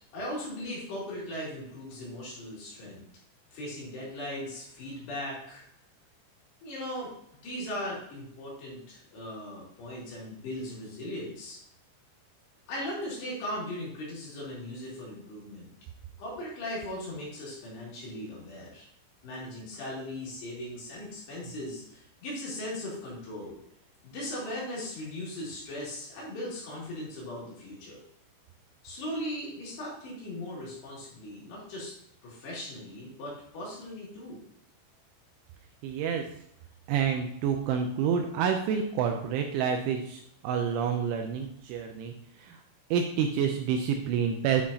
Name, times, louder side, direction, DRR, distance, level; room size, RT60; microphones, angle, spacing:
voice 1, 0.1-3.0 3.5-5.6 6.6-7.1 7.4-11.6 12.7-15.7 16.2-18.9 19.2-23.6 24.0-28.0 28.8-31.9 32.2-34.4, left 1 dB, 60° left, -5 dB, 4.3 m, -38 dB
voice 2, 35.8-36.3 36.9-42.6 42.9-44.6, right 7 dB, 80° right, 4 dB, 2.8 m, -28 dB
9.4 x 6.3 x 2.8 m, 0.71 s
omnidirectional pair, 5.9 m